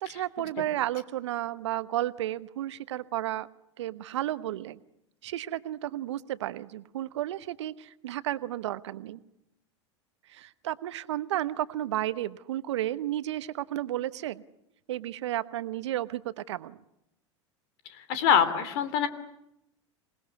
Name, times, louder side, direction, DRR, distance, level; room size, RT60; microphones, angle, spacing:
voice 1, 0.0-3.5 3.8-4.8 5.2-9.2 10.3-14.4 14.9-16.8, right 13 dB, 70° right, 15 dB, 1.0 m, -32 dB
voice 2, 18.0-19.1, left 8 dB, 60° left, 13 dB, 3.0 m, -24 dB
27.0 x 19.5 x 9.6 m, 0.84 s
hypercardioid pair, 85°, 15 cm